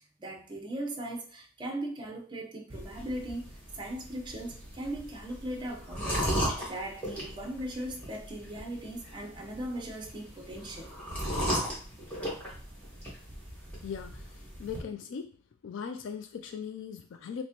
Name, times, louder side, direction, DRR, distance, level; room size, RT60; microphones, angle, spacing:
voice 1, 0.2-6.3 6.7-10.9, right 1 dB, 25° right, 2 dB, 0.7 m, -38 dB
sound 1, 2.7-14.8, equal, 10° left, 1.8 m, -37 dB
voice 2, 13.8-15.3 15.6-17.4, left 7 dB, 70° left, 6 dB, 0.3 m, -39 dB
5.9 x 2.1 x 2.9 m, 0.42 s
head